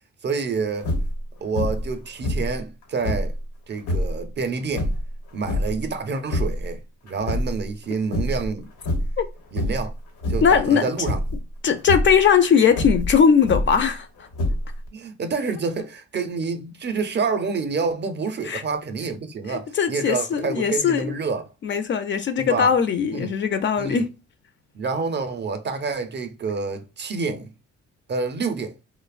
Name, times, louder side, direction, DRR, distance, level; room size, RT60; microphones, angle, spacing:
voice 1, 0.2-0.9 1.4-3.3 3.7-4.9 5.3-8.7 9.5-9.9 10.3-11.2 14.9-21.4 22.4-22.7 23.1-23.3 23.8-24.0 24.7-27.5 28.1-28.7, right 4 dB, 35° right, 0.5 m, -28 dB
sound 1, 0.8-1.2 1.5-1.9 2.2-3.4 3.8-4.2 4.7-5.8 6.2-6.7 7.1-7.8 8.1-8.5 8.8-9.2 9.5-9.9 10.2-10.6 11.0-11.4 11.8-12.1 12.7-13.9 14.3-14.9, left 1 dB, 90° left, 1.0 m, -25 dB
voice 2, 10.4-10.9 11.6-14.1 18.4-18.6 19.5-21.1 21.6-24.1, left 7 dB, 40° left, 0.4 m, -19 dB
2.8 x 2.0 x 2.3 m
cardioid pair, 90°, 30 cm